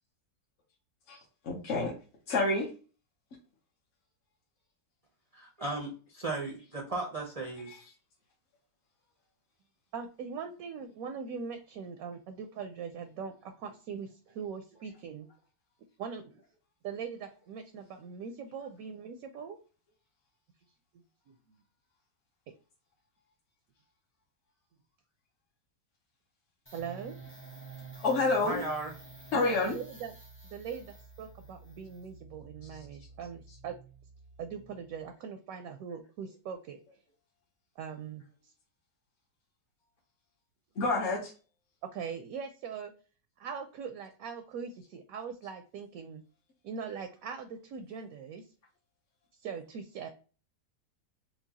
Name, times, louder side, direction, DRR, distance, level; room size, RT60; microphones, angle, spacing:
voice 1, 1.4-1.9 2.3-2.7 7.7-7.8 28.0-28.6 29.3-29.8 40.8-41.3, left 3 dB, 50° left, 1.0 m, -28 dB
voice 2, 5.3-7.8 28.4-28.9, right 2 dB, 50° right, 0.4 m, -36 dB
voice 3, 9.9-15.3 16.0-16.4 16.8-19.6 21.3-21.4 26.7-27.2 29.3-30.1 30.4-33.8 34.4-36.8 37.8-38.5 41.9-42.9 43.4-46.2 46.6-48.5 49.4-50.1, right 6 dB, 70° right, 0.9 m, -41 dB
sound 1, 26.7-35.1, right 4 dB, 20° left, 0.3 m, -51 dB
4.5 x 2.3 x 2.7 m
omnidirectional pair, 1.8 m